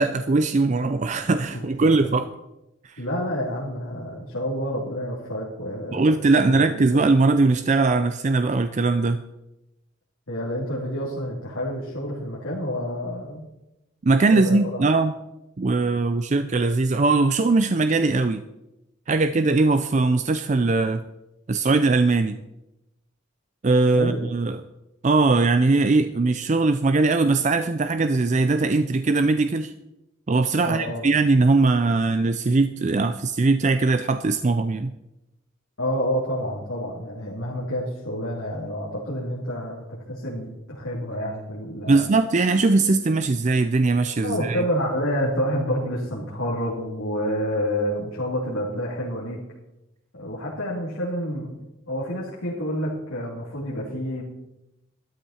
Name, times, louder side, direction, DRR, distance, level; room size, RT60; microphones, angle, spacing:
voice 1, 0.0-2.3 2.8-2.9 5.9-9.2 14.0-15.1 15.6-18.4 19.1-21.0 21.5-22.4 23.6-24.6 25.0-29.7 30.3-34.9 41.9-44.6, right 3 dB, 35° right, 10 dB, 0.4 m, -20 dB
voice 2, 1.5-1.9 3.0-6.2 6.5-6.8 10.3-13.5 14.3-14.8 23.9-24.2 30.6-31.0 35.8-42.0 44.2-49.4 50.1-51.6 51.9-54.2, equal, 90° left, -7 dB, 3.0 m, -28 dB
12.5 x 12.0 x 4.4 m, 0.94 s
head